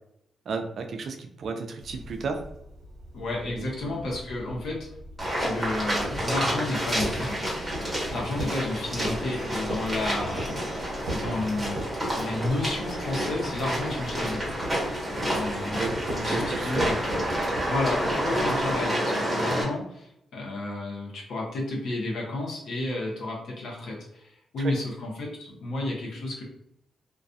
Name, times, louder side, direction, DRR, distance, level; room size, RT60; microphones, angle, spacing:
voice 1, 0.5-2.4 3.6-3.9 15.8-15.9 16.3-17.2 24.6-24.7, right 4 dB, 55° right, 5 dB, 0.4 m, -33 dB
sound 1, 1.8-18.9, equal, 70° right, 0.9 m, -40 dB
voice 2, 3.1-4.9 5.4-7.4 8.1-10.5 11.1-11.8 12.1-14.6 15.3-15.8 16.1-17.0 17.7-26.4, left 2 dB, 70° left, -2 dB, 0.8 m, -31 dB
sound 2, 5.2-19.6, equal, 10° right, 1.0 m, -29 dB
2.3 x 2.2 x 2.5 m, 0.76 s
cardioid pair, 130°, 0 cm